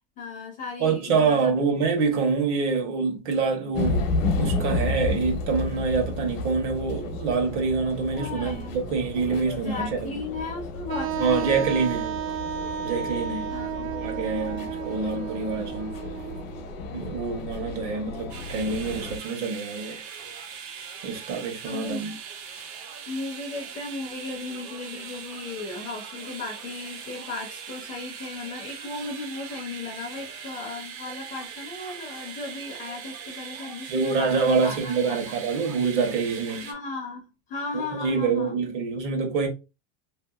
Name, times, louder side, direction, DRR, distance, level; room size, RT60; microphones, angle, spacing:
voice 1, 0.2-1.6 8.2-8.8 9.6-12.2 13.5-14.4 21.6-22.0 23.1-35.4 36.5-38.5, left 3 dB, 20° left, 0.4 m, -36 dB
voice 2, 0.8-4.1 4.4-10.1 11.2-12.1 12.8-13.5 14.0-15.9 16.9-20.0 21.0-22.1 33.9-36.7 37.7-39.5, right 5 dB, 60° right, 1.1 m, -26 dB
sound 1, 3.7-19.2, left 3 dB, 75° left, 0.8 m, -32 dB
Wind instrument woodwind instrument, 10.9-16.7, right 10 dB, 85° right, 0.5 m, -32 dB
sound 2, 18.3-36.7, right 7 dB, 35° right, 0.5 m, -40 dB
2.7 x 2.5 x 2.3 m
supercardioid pair, 150°, 40 cm